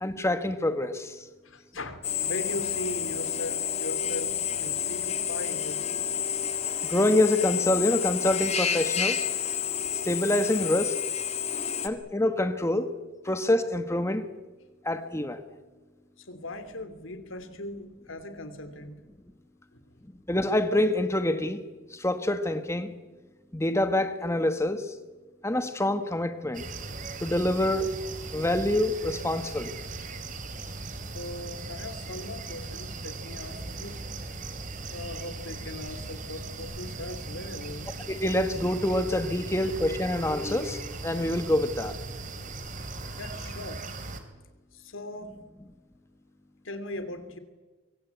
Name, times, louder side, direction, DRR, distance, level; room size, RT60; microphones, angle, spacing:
voice 1, 0.0-1.2 6.8-9.2 10.0-11.0 11.8-12.9 13.2-14.3 14.8-15.4 20.3-21.6 21.9-22.9 23.5-24.9 25.4-26.7 27.2-27.9 28.3-29.8 38.1-41.9, left 1 dB, 15° left, 1.2 m, -26 dB
voice 2, 1.4-5.9 16.2-19.0 19.7-20.0 31.1-34.1 34.9-37.9 43.1-43.8 44.7-45.4 46.6-47.4, left 1 dB, 85° left, 3.0 m, -39 dB
Drill, 2.0-11.9, left 8 dB, 35° left, 2.0 m, -30 dB
sound 1, 26.5-44.2, right 3 dB, 40° right, 2.8 m, -38 dB
25.0 x 24.0 x 8.3 m
head